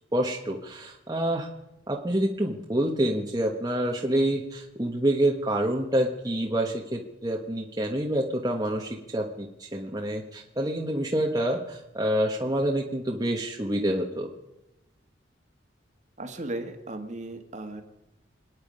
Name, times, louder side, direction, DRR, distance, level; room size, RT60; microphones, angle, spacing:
voice 1, 0.1-1.5 1.9-14.3, right 1 dB, 20° right, 0 dB, 1.3 m, -27 dB
voice 2, 16.2-17.8, right 1 dB, 40° right, 6 dB, 1.8 m, -36 dB
27.0 x 9.6 x 5.4 m, 0.92 s
head